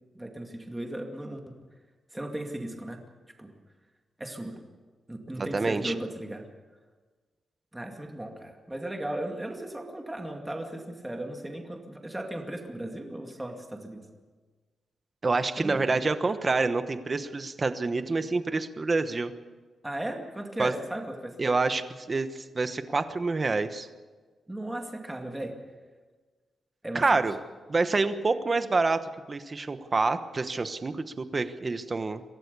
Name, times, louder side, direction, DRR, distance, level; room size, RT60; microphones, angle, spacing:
voice 1, 0.1-1.4 2.1-3.0 3.4-3.5 4.2-4.6 5.1-6.4 7.7-14.0 15.6-16.0 19.8-21.4 24.5-25.5 26.8-27.2, right 1 dB, 10° right, 3 dB, 2.3 m, -36 dB
voice 2, 5.4-5.9 15.2-19.3 20.6-20.7 21.4-23.9 26.9-27.3 27.7-29.0 29.3-32.2, right 3 dB, 30° right, 10 dB, 1.1 m, -27 dB
24.0 x 16.5 x 6.9 m, 1.4 s
wide cardioid pair, 140°, 0 cm